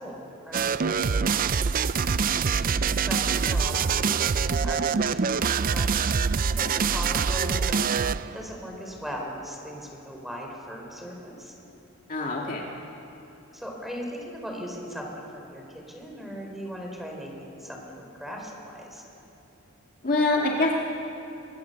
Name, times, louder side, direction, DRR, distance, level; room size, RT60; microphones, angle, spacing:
voice 1, 0.0-2.0 2.7-8.0 8.3-11.5 13.5-15.6 15.9-19.0, equal, ahead, 0 dB, 4.7 m, -39 dB
sound 1, 0.5-8.4, right 6 dB, 40° right, 0.5 m, -25 dB
voice 2, 12.1-12.6 20.0-20.7, left 2 dB, 40° left, -1 dB, 2.1 m, -24 dB
25.5 x 22.0 x 7.0 m, 2.9 s
head